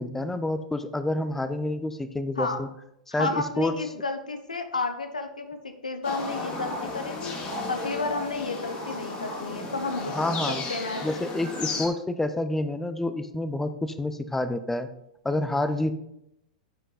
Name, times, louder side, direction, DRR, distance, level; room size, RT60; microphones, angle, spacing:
voice 1, 0.0-2.7 3.1-3.7 10.1-10.6 11.0-14.9 15.2-15.9, left 1 dB, 5° left, 10 dB, 0.7 m, -28 dB
voice 2, 3.1-7.3 7.7-11.0, left 3 dB, 85° left, 7 dB, 0.9 m, -32 dB
sound 1, 6.0-11.9, left 3 dB, 40° left, 2.9 m, -34 dB
9.8 x 5.7 x 4.0 m, 0.80 s
figure-of-eight pair, 100°, 4 cm